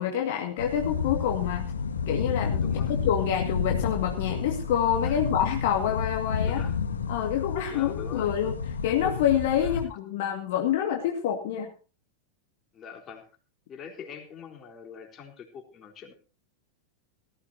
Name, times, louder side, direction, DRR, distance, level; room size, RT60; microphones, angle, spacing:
voice 1, 0.0-1.6 2.1-2.7 3.0-6.6 7.1-8.5 8.8-11.7, left 9 dB, 50° left, 2 dB, 2.1 m, -27 dB
sound 1, 0.6-9.9, left 6 dB, 70° left, 1.5 m, -30 dB
voice 2, 2.6-2.9 5.0-5.2 6.4-6.8 7.7-8.3 9.6-9.8 12.7-13.3 13.7-16.1, left 7 dB, 25° left, 2 dB, 3.9 m, -44 dB
19.0 x 14.5 x 2.8 m, 0.33 s
figure-of-eight pair, 90°, 0 cm